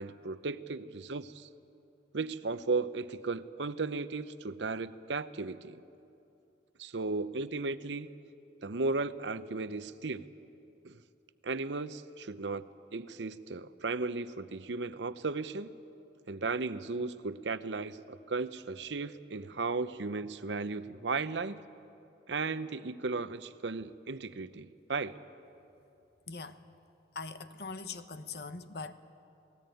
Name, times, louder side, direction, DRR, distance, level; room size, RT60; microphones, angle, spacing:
voice 1, 0.0-1.5 2.1-5.8 6.8-8.1 8.6-10.3 10.8-11.0 11.4-12.6 12.9-15.8 16.3-21.6 22.3-25.2, right 3 dB, 85° right, 13 dB, 0.8 m, -35 dB
voice 2, 26.3-26.6 27.1-28.9, left 4 dB, 65° left, 10 dB, 1.1 m, -41 dB
27.5 x 18.5 x 9.2 m, 2.7 s
head